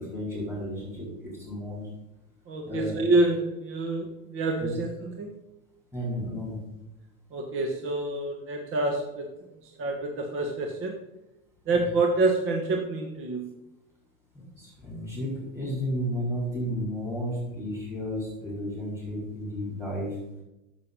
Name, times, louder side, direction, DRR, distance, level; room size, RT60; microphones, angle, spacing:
voice 1, 0.0-1.9 2.6-2.9 4.6-4.7 5.9-6.6 11.7-11.8 14.6-20.2, equal, 5° right, -8 dB, 4.5 m, -33 dB
voice 2, 2.5-5.3 7.3-11.0 11.7-13.5, right 2 dB, 30° right, 3 dB, 1.5 m, -27 dB
9.6 x 7.5 x 5.4 m, 0.93 s
supercardioid pair, 125°, 42 cm